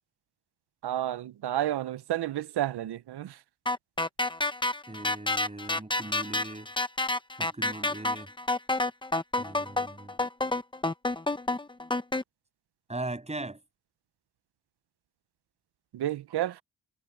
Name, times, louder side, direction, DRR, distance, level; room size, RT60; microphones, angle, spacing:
voice 1, 0.8-3.3 15.9-16.5, right 13 dB, 90° right, 0.7 m, -31 dB
sound 1, 3.7-12.2, left 2 dB, 10° left, 0.8 m, -29 dB
voice 2, 4.9-6.7 7.4-8.3 9.4-10.2 12.9-13.6, right 2 dB, 15° right, 7.8 m, -39 dB
wide cardioid pair, 140°, 39 cm